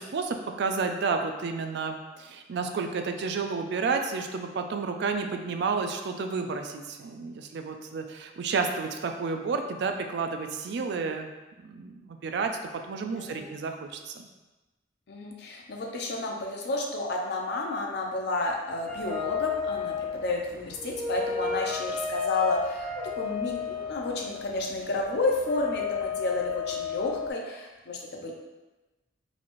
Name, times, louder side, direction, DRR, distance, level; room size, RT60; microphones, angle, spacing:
voice 1, 0.0-11.3 11.6-12.5 12.9-14.3, right 4 dB, 65° right, 5 dB, 0.3 m, -31 dB
voice 2, 13.2-13.5 15.1-28.3, left 2 dB, 60° left, 0 dB, 0.6 m, -31 dB
sound 1, 18.9-27.3, left 6 dB, 5° left, 0.4 m, -33 dB
4.0 x 2.5 x 3.0 m, 1.1 s
head